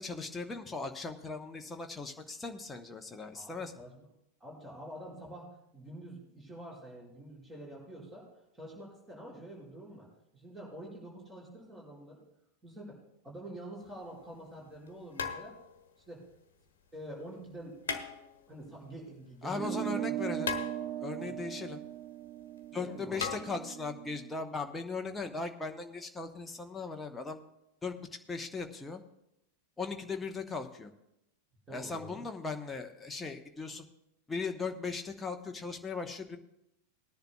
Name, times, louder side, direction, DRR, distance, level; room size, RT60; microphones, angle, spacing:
voice 1, 0.0-3.7 19.4-20.5 21.0-21.8 22.7-27.4 27.8-29.0 29.8-30.9 31.7-33.8 34.3-36.4, left 4 dB, 10° left, 3 dB, 1.0 m, -38 dB
voice 2, 3.3-4.0 4.4-8.3 8.5-10.1 10.3-12.2 12.6-13.0 13.2-15.5 16.1-16.3 16.9-17.8 18.5-20.2 21.2-21.5 22.7-23.3 31.7-32.2, right 1 dB, 15° right, -4 dB, 5.3 m, -46 dB
sound 1, 13.8-13.9 15.2-15.9 17.8-18.6 20.4-21.2 23.2-23.4, left 6 dB, 65° left, 1.2 m, -37 dB
sound 2, 19.5-24.3, right 14 dB, 30° right, 0.4 m, -39 dB
20.5 x 10.5 x 2.4 m, 0.83 s
figure-of-eight pair, 90°, 0 cm